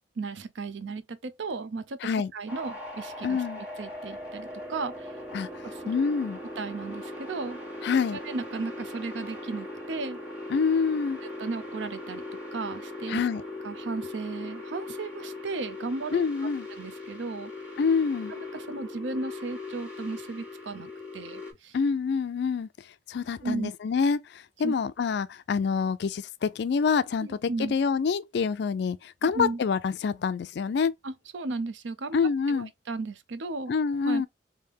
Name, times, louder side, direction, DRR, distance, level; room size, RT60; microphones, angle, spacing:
voice 1, 0.2-5.2 5.6-6.1 6.6-7.6 8.2-10.2 11.4-12.2 12.5-13.2 13.6-16.3 16.7-17.5 18.3-21.8 23.4-23.7 24.6-24.7 27.2-27.7 29.2-29.6 31.0-32.2 32.5-33.7 34.0-34.3, right 3 dB, 80° right, 0.5 m, -35 dB
sound 1, 2.5-21.5, left 2 dB, 10° right, 1.1 m, -40 dB
voice 2, 3.2-3.6 5.3-5.5 5.9-6.4 7.8-8.2 10.5-11.2 13.1-13.4 16.1-16.7 17.8-18.3 21.7-22.7 23.1-27.3 27.6-30.9 32.1-32.7 33.7-34.3, left 5 dB, 65° left, 0.4 m, -26 dB
3.3 x 2.7 x 3.4 m
head